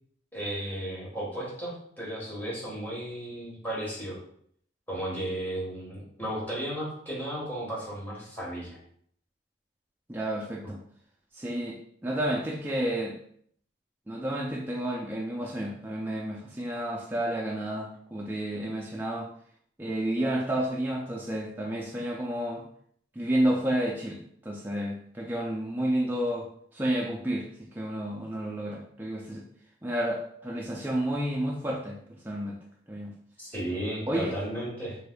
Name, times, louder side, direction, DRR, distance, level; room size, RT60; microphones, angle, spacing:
voice 1, 0.3-4.2 4.9-8.8 33.4-35.0, right 1 dB, 10° left, -6 dB, 1.3 m, -34 dB
voice 2, 10.1-10.8 11.3-13.2 14.1-19.3 19.8-22.6 23.2-29.5 29.8-32.6 32.9-33.2 34.1-34.3, right 1 dB, 10° right, -2 dB, 0.3 m, -31 dB
3.4 x 3.3 x 2.2 m, 0.63 s
head